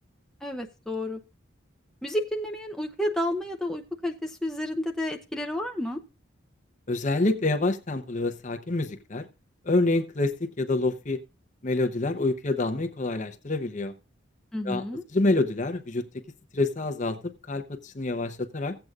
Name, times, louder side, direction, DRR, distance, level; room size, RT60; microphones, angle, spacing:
voice 1, 0.4-1.2 2.0-6.0 14.5-15.0, left 1 dB, 5° left, 0.6 m, -31 dB
voice 2, 6.9-9.3 9.6-11.2 11.6-13.9 14.6-14.8 15.1-16.1 16.5-18.8, left 2 dB, 40° left, 0.7 m, -27 dB
16.5 x 7.9 x 2.4 m
head